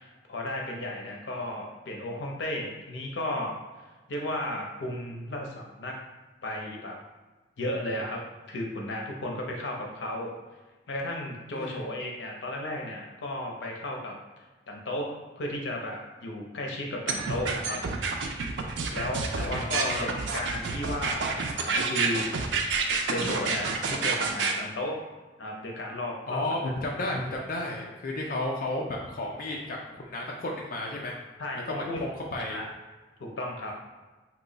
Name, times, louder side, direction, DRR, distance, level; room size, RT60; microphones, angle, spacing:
voice 1, 0.0-3.5 4.1-6.0 6.4-7.0 7.6-10.3 10.9-14.2 14.7-17.8 18.9-22.6 23.1-25.0 25.4-26.4 31.4-32.0 32.5-32.7 33.2-33.7, left 1 dB, 90° left, 0 dB, 0.6 m, -34 dB
voice 2, 11.5-11.9 19.3-20.1 26.3-31.1 31.6-32.6, left 1 dB, 50° left, -2 dB, 0.4 m, -33 dB
sound 1, 17.1-24.5, right 4 dB, 85° right, 0.4 m, -28 dB
3.0 x 2.2 x 3.8 m, 1.2 s
head